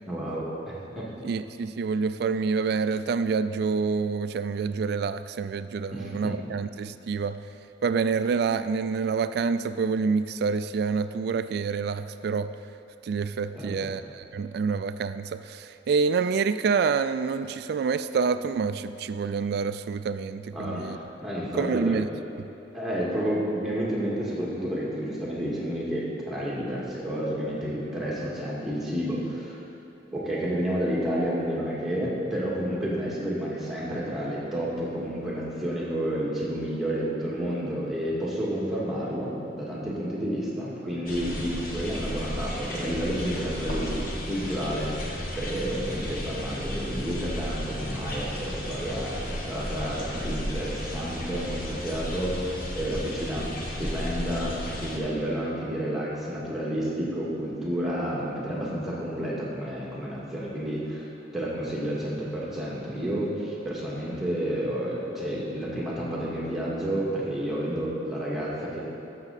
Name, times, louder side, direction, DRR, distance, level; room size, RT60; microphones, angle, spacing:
voice 1, 0.1-1.1 5.9-6.4 13.6-13.9 20.5-22.0 22.7-29.6 30.1-61.1 61.3-68.8, equal, ahead, -7 dB, 1.9 m, -30 dB
voice 2, 1.2-7.4 7.8-12.5 13.0-21.0 21.6-22.1, right 5 dB, 60° right, 12 dB, 0.3 m, -27 dB
sound 1, 41.1-55.0, equal, 50° left, 1.3 m, -34 dB
13.0 x 6.6 x 4.1 m, 3.0 s
head